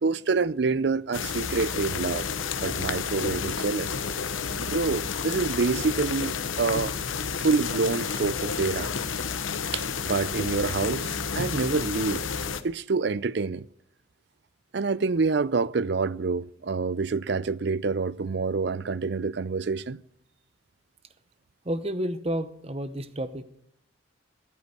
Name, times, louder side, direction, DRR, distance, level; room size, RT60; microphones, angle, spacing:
voice 1, 0.0-2.3 2.6-3.9 4.6-6.9 7.4-8.9 9.7-12.3 12.6-13.7 14.7-20.0, right 4 dB, 60° right, 0.5 m, -27 dB
sound 1, 1.1-12.6, left 6 dB, 90° left, 1.0 m, -31 dB
voice 2, 21.6-23.4, equal, 30° right, 0.9 m, -30 dB
13.5 x 8.3 x 8.3 m
head